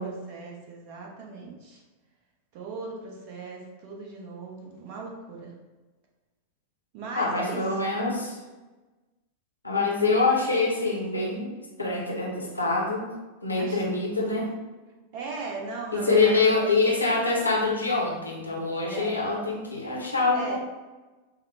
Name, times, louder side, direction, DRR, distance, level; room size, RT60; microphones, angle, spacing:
voice 1, 0.0-1.8 2.5-5.5 6.9-7.7 13.6-13.8 15.1-16.4 18.9-19.3 20.3-20.6, right 4 dB, 45° right, -1 dB, 0.9 m, -38 dB
voice 2, 7.1-8.4 9.6-13.1 13.4-14.5 15.9-20.6, left 3 dB, 85° left, -1 dB, 0.9 m, -25 dB
6.3 x 2.1 x 3.2 m, 1.2 s
figure-of-eight pair, 90°, 0 cm